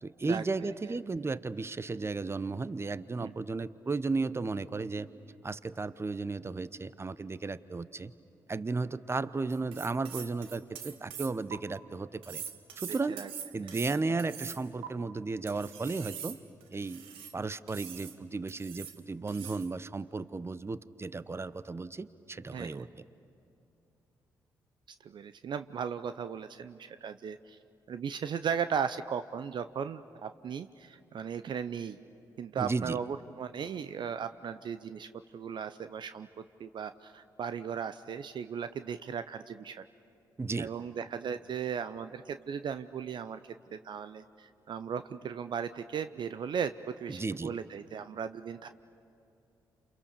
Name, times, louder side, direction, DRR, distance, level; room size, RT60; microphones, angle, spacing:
voice 1, 0.0-5.1 5.4-8.1 8.5-12.4 12.8-13.2 13.5-16.4 16.7-17.0 17.3-22.9 32.6-33.0 40.4-40.7 47.1-47.5, right 3 dB, 25° right, 16 dB, 0.9 m, -34 dB
sound 1, 9.5-11.6 12.2-14.9 15.5-17.3 17.7-18.1 18.5-19.0 19.3-19.7, right 9 dB, 75° right, 1.3 m, -43 dB
voice 2, 12.9-13.3 22.5-22.9 25.0-27.6 27.9-32.0 32.4-39.8 40.6-43.4 43.7-48.7, right 7 dB, 55° right, 11 dB, 0.7 m, -37 dB
29.0 x 28.5 x 6.9 m, 2.7 s
hypercardioid pair, 40°, 9 cm